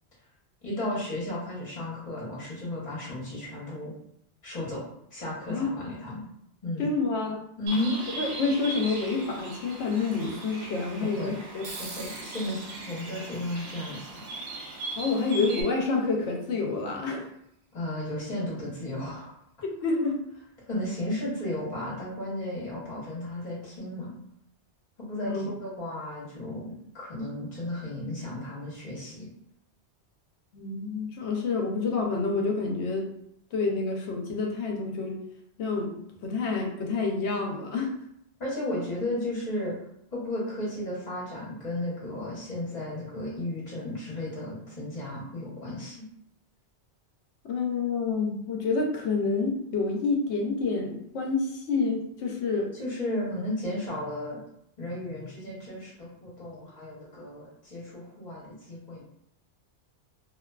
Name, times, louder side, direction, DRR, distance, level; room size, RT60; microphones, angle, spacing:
voice 1, 0.6-3.9 4.4-4.8 5.1-6.2 6.6-6.9 7.6-8.0 11.0-11.4 11.8-14.1 17.7-19.4 20.7-24.1 25.1-29.3 38.4-39.7 40.1-46.0 52.7-54.4 54.8-59.0, left 1 dB, 40° left, -6 dB, 1.0 m, -34 dB
voice 2, 6.8-7.4 8.2-11.7 15.0-17.3 19.8-20.2 25.2-25.4 30.5-33.1 33.5-35.2 35.6-35.9 36.2-37.9 47.5-52.7, left 4 dB, 75° left, 1 dB, 0.8 m, -28 dB
Bird, 7.7-15.6, right 2 dB, 80° right, 1.0 m, -39 dB
sound 1, 11.6-16.6, right 2 dB, 55° right, 0.5 m, -46 dB
2.5 x 2.2 x 2.2 m, 0.75 s
omnidirectional pair, 1.2 m